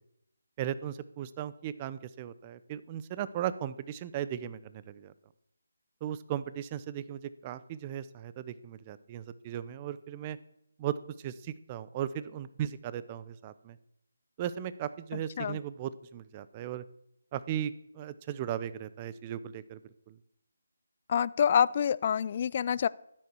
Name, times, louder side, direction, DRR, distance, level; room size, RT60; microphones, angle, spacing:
voice 1, 0.6-5.1 6.0-10.4 10.8-11.0 11.2-13.8 14.4-16.8 17.3-19.8 20.1-20.2, right 10 dB, 25° right, 15 dB, 0.7 m, -37 dB
voice 2, 15.1-15.6 21.1-22.9, left 8 dB, 40° left, 20 dB, 0.4 m, -27 dB
13.0 x 9.7 x 6.2 m, 0.77 s
figure-of-eight pair, 155°, 0 cm